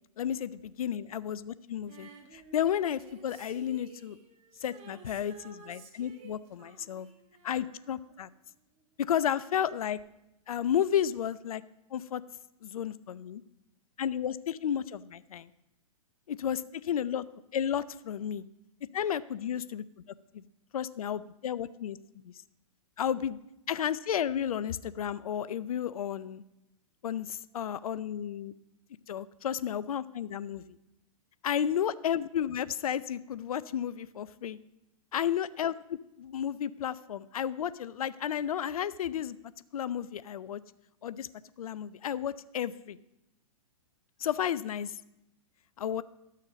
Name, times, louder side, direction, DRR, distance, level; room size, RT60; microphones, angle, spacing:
voice 1, 0.2-4.2 4.6-7.1 7.4-8.3 9.0-10.0 10.5-11.6 11.9-12.2 12.6-13.4 14.0-15.5 16.3-17.2 17.5-18.4 18.9-19.8 20.3-20.4 20.7-22.3 23.0-23.4 23.7-26.4 27.0-28.5 29.1-30.6 31.4-34.6 35.1-35.7 36.2-39.4 39.7-40.6 41.0-41.3 41.6-43.0 44.2-45.0 45.8-46.0, left 9 dB, 80° left, 17 dB, 0.5 m, -32 dB
Female singing, 1.9-8.8 10.0-10.1, right 5 dB, 35° right, 1.6 m, -54 dB
12.0 x 6.6 x 5.1 m, 0.88 s
hypercardioid pair, 125°, 18 cm